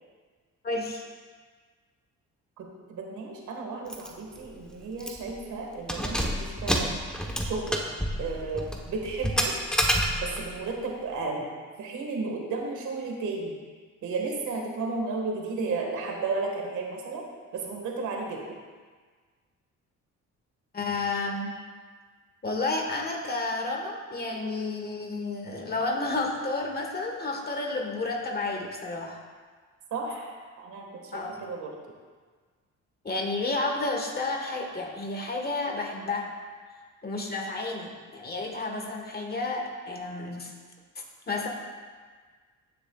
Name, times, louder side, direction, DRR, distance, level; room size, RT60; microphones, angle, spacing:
voice 1, 0.6-1.0 20.7-21.5 22.4-29.2 31.1-31.4 33.0-36.3 37.0-40.5 40.9-41.5, left 3 dB, 30° left, 1 dB, 1.5 m, -31 dB
voice 2, 2.6-7.0 7.4-7.8 8.2-9.5 10.2-11.5 11.8-13.5 14.0-17.3 17.5-18.4 29.9-31.7, right 3 dB, 75° right, 0 dB, 1.7 m, -33 dB
Keys jangling, 3.9-4.1 4.4-4.5 5.0-5.3 5.8-10.5, equal, ahead, 1.0 m, -29 dB
14.5 x 6.8 x 2.4 m, 1.5 s
cardioid pair, 90°, 30 cm